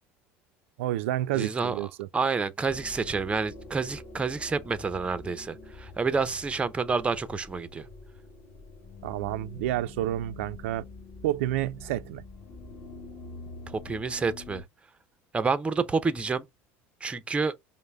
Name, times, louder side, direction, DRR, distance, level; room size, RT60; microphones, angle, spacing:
voice 1, 0.8-2.1 9.0-10.8 11.2-12.2, right 14 dB, 85° right, 0.3 m, -29 dB
voice 2, 1.3-1.8 2.1-7.9 13.7-14.6 15.3-16.4 17.0-17.5, right 4 dB, 15° right, 0.5 m, -29 dB
sound 1, 2.7-14.6, left 3 dB, 35° left, 2.0 m, -46 dB
5.3 x 2.1 x 3.4 m
supercardioid pair, 105°, 7 cm